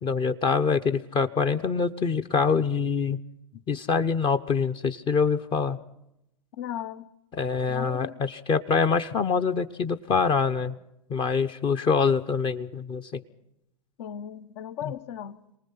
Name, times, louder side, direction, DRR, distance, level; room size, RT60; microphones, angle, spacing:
voice 1, 0.0-3.2 3.7-5.8 7.3-10.8 11.1-13.2 14.8-14.9, left 5 dB, 30° left, 0.9 m, -25 dB
voice 2, 6.6-7.1 7.7-8.1 14.0-15.4, left 10 dB, 55° left, 1.2 m, -36 dB
27.5 x 19.5 x 5.8 m
hypercardioid pair, 95°, 17 cm